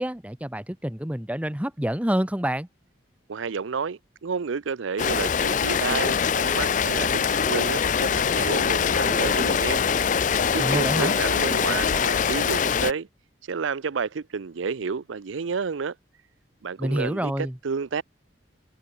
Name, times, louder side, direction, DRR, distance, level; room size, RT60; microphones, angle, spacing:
voice 1, 0.0-2.7 10.6-11.1 16.8-17.6, equal, 5° right, 0.9 m, -27 dB
voice 2, 3.3-9.8 10.5-13.1 13.4-16.0 16.6-17.3 17.6-18.0, right 5 dB, 90° right, 0.6 m, -30 dB
Rain, 5.0-12.9, left 6 dB, 40° left, 0.4 m, -23 dB
head